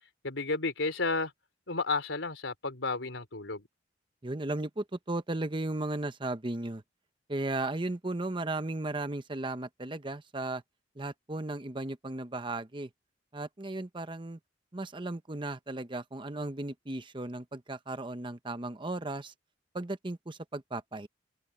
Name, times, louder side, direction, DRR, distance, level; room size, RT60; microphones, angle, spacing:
voice 1, 0.2-1.3 1.7-3.7, left 3 dB, 85° left, 4.0 m, -32 dB
voice 2, 4.2-6.8 7.3-10.6 11.0-12.9 13.3-14.4 14.7-19.3 19.7-21.1, right 2 dB, 25° right, 0.9 m, -35 dB
open air
head